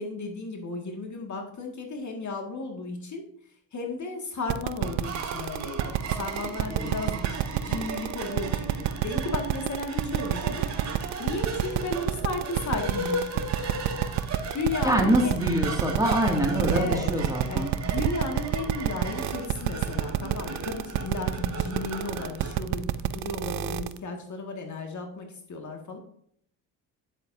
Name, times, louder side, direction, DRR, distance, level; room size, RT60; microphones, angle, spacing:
voice 1, 0.0-3.2 3.7-7.4 7.6-10.6 11.2-13.4 14.5-15.3 16.7-17.1 17.5-26.0, left 3 dB, 40° left, 2 dB, 2.0 m, -34 dB
sound 1, 4.5-24.0, right 15 dB, 65° right, 0.6 m, -27 dB
sound 2, 4.8-22.6, right 3 dB, 40° right, 3.5 m, -36 dB
voice 2, 14.8-17.7, equal, 10° right, 0 dB, 2.3 m, -25 dB
9.4 x 7.3 x 2.7 m, 0.65 s
supercardioid pair, 70°, 43 cm